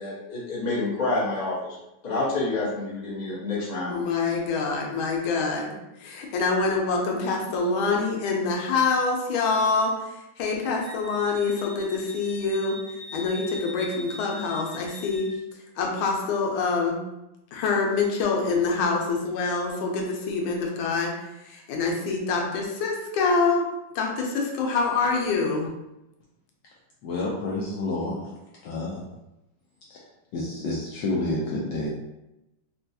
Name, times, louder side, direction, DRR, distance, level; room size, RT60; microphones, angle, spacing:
voice 1, 0.0-1.8 2.0-4.0, left 2 dB, 30° left, -7 dB, 0.8 m, -28 dB
voice 2, 3.9-10.0 10.4-12.8 13.1-15.3 15.8-17.0 17.5-23.6 23.9-25.7, left 4 dB, 90° left, 0 dB, 1.5 m, -25 dB
Wind instrument woodwind instrument, 10.8-15.4, left 1 dB, 75° right, 2.0 m, -42 dB
voice 3, 27.0-28.3 28.6-29.1 29.9-30.0 30.3-31.9, left 2 dB, 75° left, -4 dB, 1.1 m, -29 dB
4.2 x 2.3 x 2.6 m, 0.93 s
omnidirectional pair, 2.2 m